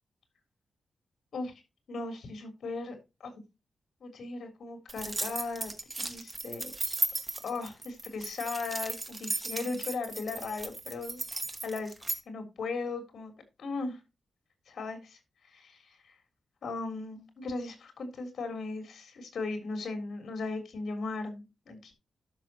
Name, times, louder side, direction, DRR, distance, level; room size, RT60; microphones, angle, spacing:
voice 1, 1.9-3.0 3.2-3.3 4.0-5.7 6.0-6.7 7.4-11.2 11.6-11.9 12.3-13.3 13.6-14.0 14.7-15.2 15.4-16.2 16.6-21.9, left 3 dB, 65° left, 3.5 m, -37 dB
sound 1, 4.9-12.2, right 2 dB, 20° right, 1.2 m, -35 dB
12.0 x 6.4 x 3.0 m
wide cardioid pair, 145°, 0 cm